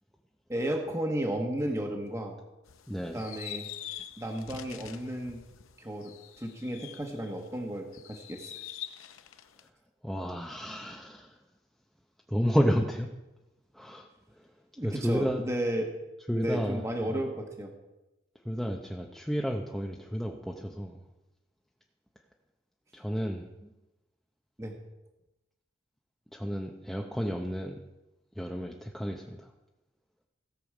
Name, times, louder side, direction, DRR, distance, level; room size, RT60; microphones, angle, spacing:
voice 1, 0.5-2.4 3.1-3.7 4.2-5.4 5.8-8.5 14.8-15.9 16.3-17.7 24.6-24.8, right 1 dB, 15° right, 2 dB, 1.2 m, -33 dB
sound 1, 2.7-7.5 7.9-9.7, left 11 dB, 85° left, 0.7 m, -45 dB
voice 2, 2.9-3.2 10.0-11.4 12.3-13.1 13.7-14.1 14.4-14.5 14.8-15.4 16.3-17.2 18.4-21.0 22.9-23.7 26.3-27.8 28.4-29.5, equal, ahead, 0 dB, 0.7 m, -31 dB
16.5 x 7.0 x 4.9 m, 1.0 s
head